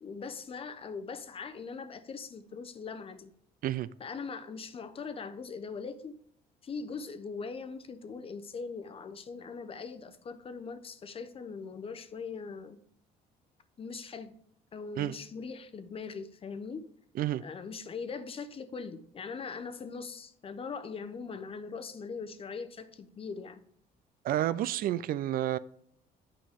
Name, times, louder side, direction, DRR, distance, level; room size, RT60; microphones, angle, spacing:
voice 1, 0.0-3.3 4.0-6.2 6.6-12.8 13.8-14.3 14.7-16.8 17.4-23.6, left 5 dB, 35° left, 0.7 m, -41 dB
voice 2, 24.2-25.6, right 12 dB, 60° right, 0.4 m, -30 dB
8.8 x 5.3 x 3.5 m
cardioid pair, 110°, 17 cm